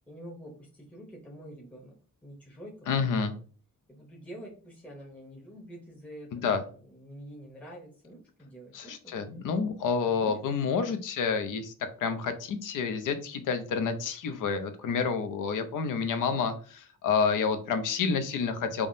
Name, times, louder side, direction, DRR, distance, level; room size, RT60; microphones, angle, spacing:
voice 1, 0.1-2.0 2.2-3.4 3.9-9.1 10.1-10.4, right 1 dB, 5° left, -3 dB, 0.7 m, -47 dB
voice 2, 2.9-3.3 6.3-6.6 8.7-11.7 12.0-18.9, left 5 dB, 75° left, 9 dB, 0.6 m, -29 dB
3.4 x 2.0 x 2.6 m, 0.40 s
cardioid pair, 90°, 31 cm